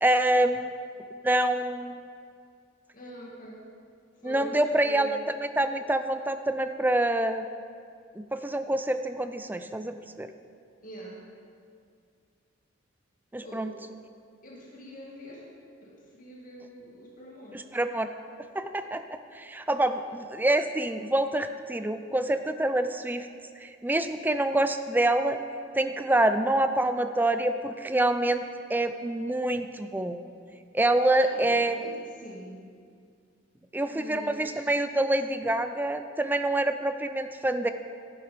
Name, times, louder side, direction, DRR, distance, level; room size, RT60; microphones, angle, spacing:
voice 1, 0.0-0.7 1.2-2.0 4.2-5.2 5.6-7.5 8.2-10.3 13.3-13.7 17.5-18.1 18.5-23.3 23.6-25.4 25.8-28.4 28.7-30.2 30.7-31.9 33.7-37.7, right 1 dB, 10° right, 9 dB, 0.4 m, -26 dB
voice 2, 2.9-3.7 4.1-5.2 10.8-11.2 13.4-13.7 14.4-15.5 15.8-17.7 20.0-20.2 31.1-32.6 33.9-34.8, right 1 dB, 45° left, -3 dB, 2.1 m, -44 dB
11.0 x 10.0 x 5.1 m, 2.3 s
head